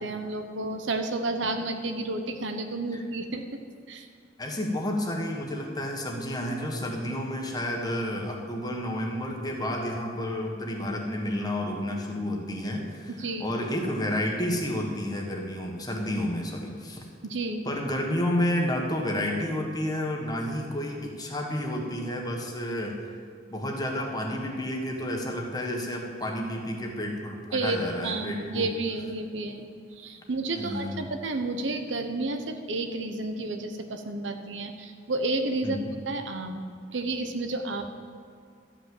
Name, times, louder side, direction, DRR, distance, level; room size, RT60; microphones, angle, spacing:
voice 1, 0.0-3.6 3.9-4.1 13.1-13.5 17.2-17.7 27.5-27.8 28.0-29.7 30.0-35.8 36.1-37.8, right 2 dB, 80° right, 6 dB, 0.9 m, -31 dB
voice 2, 4.4-17.1 17.6-23.0 23.5-28.7 30.5-31.1 35.6-35.9, left 1 dB, 20° left, 0 dB, 1.4 m, -30 dB
13.0 x 5.9 x 7.7 m, 2.1 s
head